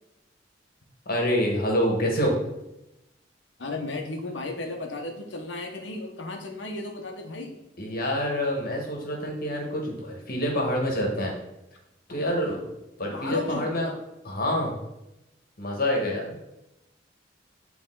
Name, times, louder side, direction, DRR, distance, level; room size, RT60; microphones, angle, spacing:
voice 1, 1.0-2.4 7.8-11.3 12.1-12.7 13.0-13.9 14.2-14.8 15.6-16.3, equal, 55° left, 0 dB, 1.5 m, -26 dB
voice 2, 3.6-7.6 13.1-13.7, left 2 dB, 70° left, 3 dB, 1.1 m, -34 dB
8.7 x 3.4 x 3.9 m, 0.90 s
head